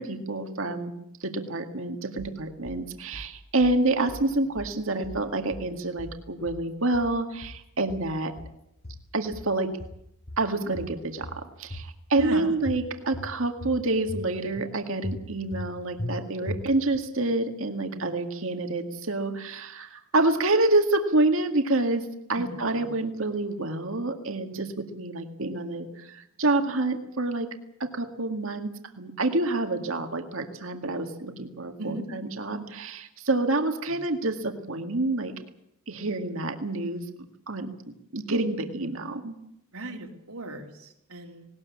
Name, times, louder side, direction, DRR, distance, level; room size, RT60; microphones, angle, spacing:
voice 1, 0.0-8.3 9.1-9.7 10.4-27.5 27.8-28.7 29.0-35.3 35.9-37.0 37.5-37.7 38.1-39.3, right 2 dB, 65° right, 6 dB, 2.0 m, -28 dB
sound 1, 2.2-2.8 3.1-3.8 4.1-4.8 5.0-5.7 6.0-6.7 6.9-7.6 7.9-8.6 8.8-9.5 9.8-10.5 10.7-11.4 11.7-12.4 12.7-13.3 13.6-14.3 14.5-14.7 15.0-15.7 16.0-16.1 16.5-17.0, left 1 dB, 45° left, 2.2 m, -38 dB
voice 2, 12.2-12.5 17.9-18.2 22.3-22.9 31.8-32.0 33.8-33.9 39.7-41.5, right 1 dB, 80° right, 2 dB, 3.8 m, -38 dB
19.5 x 19.0 x 8.6 m, 0.79 s
head